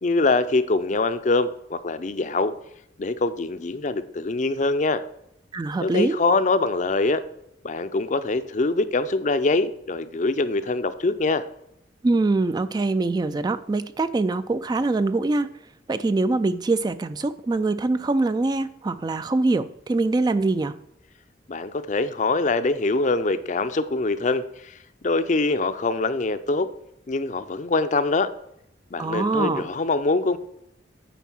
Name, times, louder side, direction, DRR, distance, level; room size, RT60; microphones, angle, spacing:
voice 1, 0.0-2.5 3.0-5.0 5.8-7.2 7.6-11.4 21.5-24.8 25.0-26.7 27.1-28.3 28.9-30.4, left 3 dB, 40° left, 0.5 m, -24 dB
voice 2, 5.5-6.2 12.0-15.5 15.9-20.7 29.0-29.6, right 3 dB, 20° right, 0.3 m, -23 dB
9.1 x 4.7 x 6.2 m
head